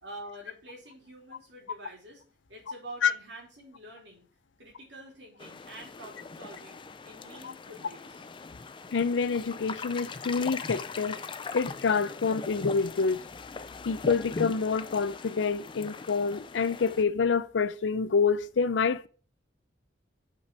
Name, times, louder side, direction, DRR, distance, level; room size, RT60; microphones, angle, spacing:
voice 1, 0.0-2.2 2.5-4.3 4.6-8.3, right 1 dB, 70° right, 2.9 m, -47 dB
sound 1, 5.4-17.0, left 4 dB, 25° left, 0.4 m, -40 dB
voice 2, 8.9-11.2 11.5-13.2 13.9-19.1, left 5 dB, 85° left, 0.5 m, -27 dB
5.4 x 5.1 x 5.1 m
head